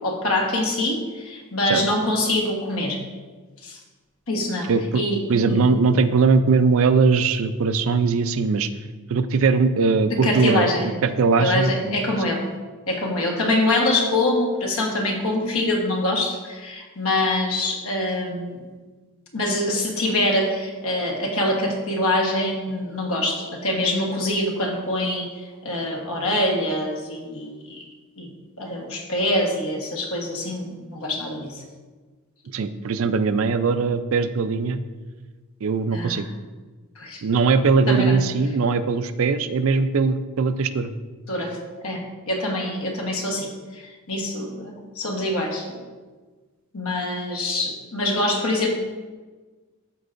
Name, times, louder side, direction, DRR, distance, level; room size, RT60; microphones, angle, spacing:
voice 1, 0.0-3.0 3.6-3.8 4.3-5.7 10.1-10.9 11.4-12.4 12.9-18.6 19.3-25.3 25.6-27.8 28.2-28.3 28.6-31.6 35.9-36.2 37.0-37.2 37.9-38.2 41.3-41.6 41.8-45.8 46.7-48.7, left 1 dB, 70° left, 0 dB, 1.4 m, -24 dB
voice 2, 4.7-5.0 5.3-8.7 9.1-10.7 11.0-12.0 32.5-34.8 35.6-36.3 37.2-40.9, right 4 dB, 65° right, 11 dB, 0.4 m, -20 dB
13.0 x 4.6 x 2.6 m, 1.3 s
head